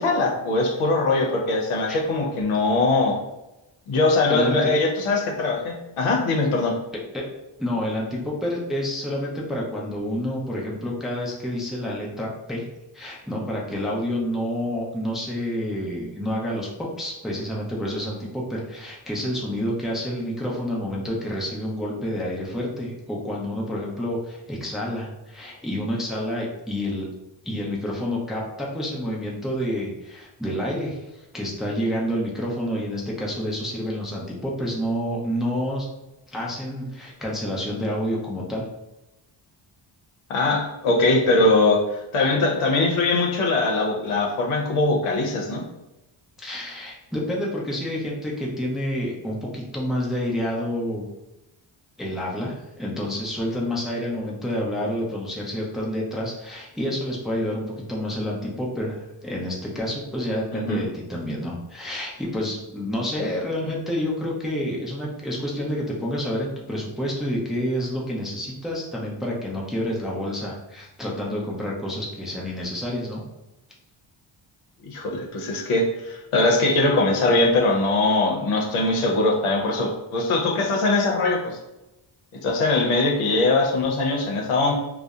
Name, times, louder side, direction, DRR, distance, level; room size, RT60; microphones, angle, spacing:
voice 1, 0.0-3.2 3.9-6.8 40.3-45.6 60.5-60.8 74.8-81.6 82.3-84.7, left 2 dB, 85° left, 1 dB, 0.7 m, -21 dB
voice 2, 4.3-4.7 7.1-7.2 7.6-12.6 12.9-16.7 17.0-27.1 27.4-35.9 36.3-38.6 46.4-51.0 52.0-73.2, equal, ahead, -3 dB, 0.4 m, -28 dB
2.6 x 2.0 x 2.3 m, 0.96 s
cardioid pair, 85°, 49 cm